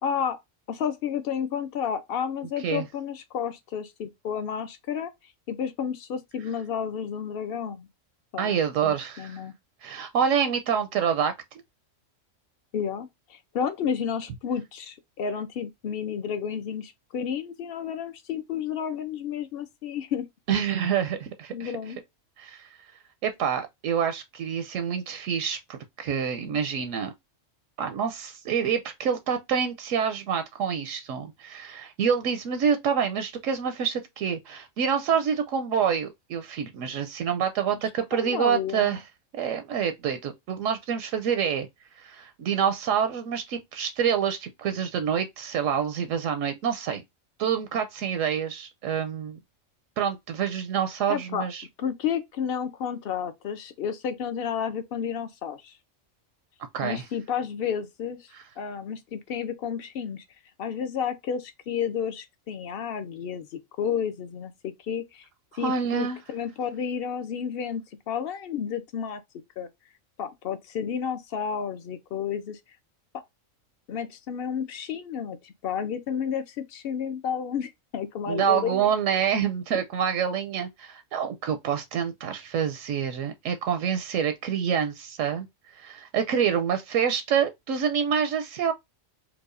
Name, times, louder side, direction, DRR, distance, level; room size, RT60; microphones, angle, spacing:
voice 1, 0.0-0.4 0.7-5.1 5.5-7.9 8.3-9.5 12.7-20.3 21.5-22.0 38.1-39.0 51.1-51.5 51.8-55.8 56.8-60.2 60.6-65.3 65.5-69.2 69.6-69.7 70.2-72.6 73.1-73.2 73.9-78.9 79.7-79.8, left 7 dB, 55° left, 0.7 m, -31 dB
voice 2, 8.4-9.4 9.8-11.3 20.5-21.7 22.4-22.7 23.2-27.1 27.8-39.0 39.3-41.7 42.0-47.0 47.4-49.4 50.0-51.6 56.7-57.0 65.6-66.2 78.3-85.5 85.8-88.7, right 7 dB, 80° right, 1.0 m, -27 dB
4.7 x 2.2 x 2.5 m
omnidirectional pair, 1.3 m